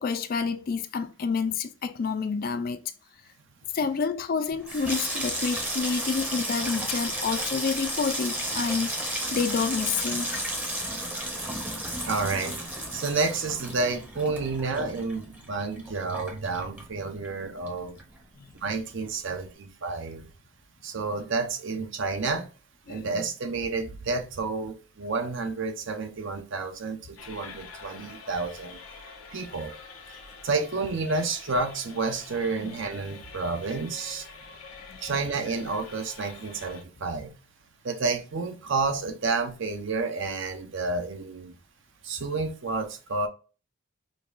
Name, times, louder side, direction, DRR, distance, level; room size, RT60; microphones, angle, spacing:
voice 1, 0.0-2.8 3.7-10.4 18.4-18.5 22.9-23.3 32.6-32.7 34.9-35.0, left 5 dB, 45° left, 0.3 m, -29 dB
Water tap faucet / Sink (filling or washing), 4.5-17.4 17.7-18.3 18.6-18.9, right 1 dB, 5° right, 0.7 m, -33 dB
voice 2, 12.0-12.6 12.9-18.0 18.6-20.3 20.8-22.5 22.9-28.8 29.3-29.7 30.4-34.3 35.0-37.3 37.8-41.5 42.0-43.3, right 3 dB, 60° right, 0.6 m, -30 dB
sound 1, 27.2-36.8, left 5 dB, 85° left, 0.8 m, -46 dB
5.2 x 2.3 x 2.4 m
head